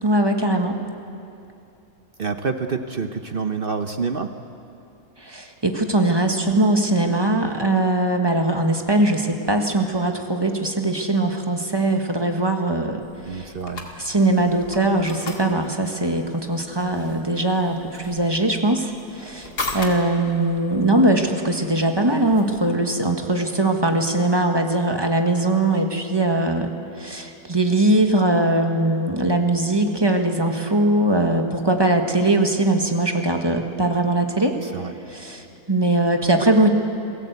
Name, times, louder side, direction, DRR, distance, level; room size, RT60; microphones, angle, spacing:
voice 1, 0.0-0.8 5.2-13.5 14.0-18.9 19.2-19.5 19.7-26.7 27.0-34.6 35.1-35.4 35.7-36.7, right 2 dB, 15° right, 4 dB, 1.5 m, -21 dB
voice 2, 2.2-4.3 13.3-13.9 34.6-34.9, right 5 dB, 45° right, 7 dB, 0.8 m, -27 dB
sound 1, 13.0-22.7, left 2 dB, 85° left, 2.8 m, -38 dB
28.0 x 17.0 x 8.1 m, 2.7 s
omnidirectional pair, 1.7 m